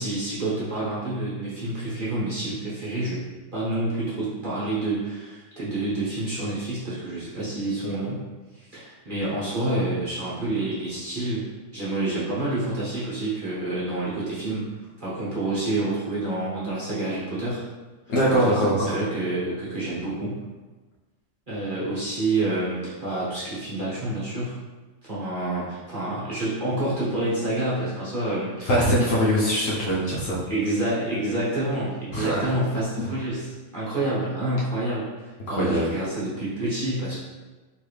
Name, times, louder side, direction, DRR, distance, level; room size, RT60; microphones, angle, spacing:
voice 1, 0.0-3.2 3.5-8.2 8.5-11.4 11.7-14.6 15.0-17.6 18.3-20.4 21.5-24.6 25.0-28.7 30.4-37.1, right 2 dB, 35° right, -9 dB, 1.0 m, -28 dB
voice 2, 18.1-18.9 28.7-30.4 32.1-32.5 35.5-35.9, equal, 55° left, -5 dB, 1.1 m, -22 dB
4.5 x 3.1 x 3.3 m, 1.2 s
omnidirectional pair, 1.8 m